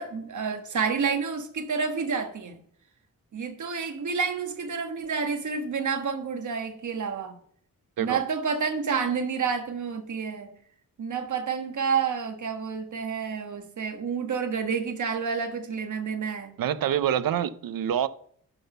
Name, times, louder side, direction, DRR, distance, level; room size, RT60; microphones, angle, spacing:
voice 1, 0.0-2.6 3.3-7.4 8.0-10.5 11.0-16.5, right 5 dB, 60° right, 1.4 m, -29 dB
voice 2, 16.6-18.1, right 10 dB, 85° right, 0.6 m, -26 dB
11.0 x 4.0 x 6.7 m
wide cardioid pair, 135°, 33 cm